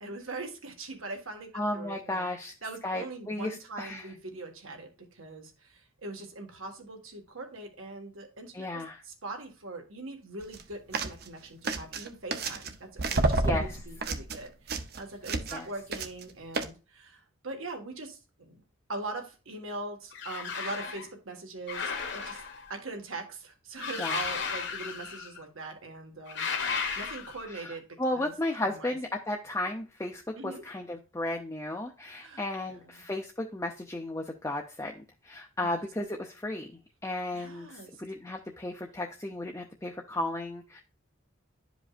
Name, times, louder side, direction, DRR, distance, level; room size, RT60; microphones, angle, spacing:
voice 1, 0.0-2.3 2.6-18.6 18.9-22.4 22.7-26.5 26.9-27.9 28.1-28.3 28.6-29.0 30.4-30.6 32.2-33.1 35.6-35.8 37.3-38.0, right 2 dB, 75° right, 4 dB, 1.6 m, -42 dB
voice 2, 1.5-2.5 2.8-4.1 8.5-9.0 13.3-13.8 15.5-15.7 24.0-24.2 27.5-36.7 37.0-40.8, left 1 dB, 15° left, 1 dB, 0.5 m, -34 dB
sound 1, 10.4-10.6 10.9-11.3 11.6-12.7 13.0-15.7 15.9-16.2 16.5-16.7, right 2 dB, 45° right, 0.6 m, -30 dB
sound 2, 20.1-21.1 21.7-22.7 23.8-25.4 26.3-27.5, left 5 dB, 55° left, 1.1 m, -34 dB
11.0 x 5.0 x 2.5 m, 0.33 s
head